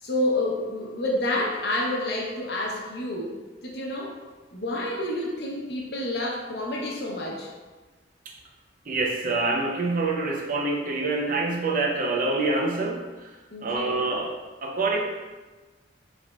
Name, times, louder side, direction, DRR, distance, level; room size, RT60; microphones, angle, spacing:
voice 1, 0.0-3.3 3.6-4.1 4.5-7.5 13.5-14.0, left 1 dB, 65° left, -2 dB, 0.8 m, -29 dB
voice 2, 8.9-13.3 13.6-14.3 14.6-15.0, right 3 dB, 50° right, 0 dB, 0.6 m, -26 dB
5.0 x 3.4 x 2.3 m, 1.3 s
head